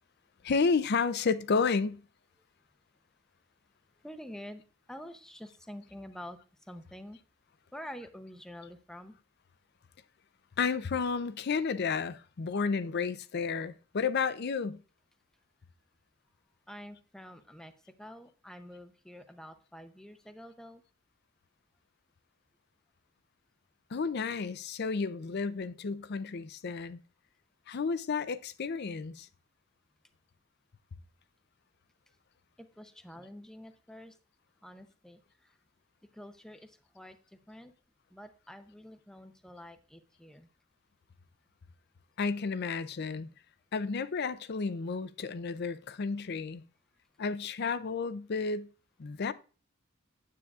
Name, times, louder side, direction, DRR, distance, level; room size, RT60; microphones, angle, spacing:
voice 1, 0.4-2.0 10.6-14.8 23.9-27.0 27.7-29.3 42.2-43.3 43.7-46.6 47.2-48.7 49.0-49.3, left 5 dB, 50° left, 0.5 m, -31 dB
voice 2, 4.0-4.6 4.9-7.2 7.7-9.1 16.7-20.8 32.6-34.2 34.6-35.6 36.1-37.7 38.1-40.5, equal, 5° left, 0.6 m, -48 dB
9.5 x 8.3 x 2.4 m
head